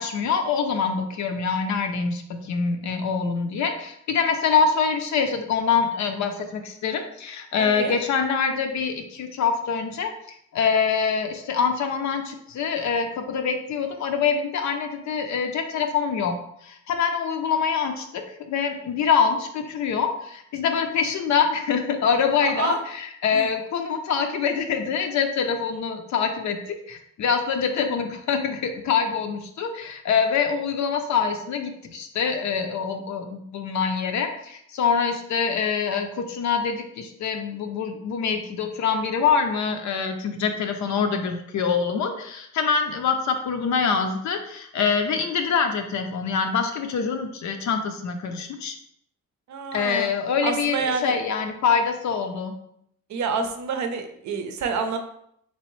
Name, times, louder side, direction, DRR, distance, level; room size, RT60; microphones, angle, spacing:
voice 1, 0.0-10.1 10.5-16.3 16.6-26.6 26.9-48.7 49.7-52.5, left 6 dB, 65° left, 5 dB, 0.5 m, -25 dB
voice 2, 7.6-8.0 22.4-22.8 23.3-23.5 49.5-50.1 50.4-51.1 53.1-55.0, right 5 dB, 65° right, 6 dB, 0.6 m, -28 dB
3.6 x 3.0 x 3.0 m, 0.72 s
cardioid pair, 135°, 31 cm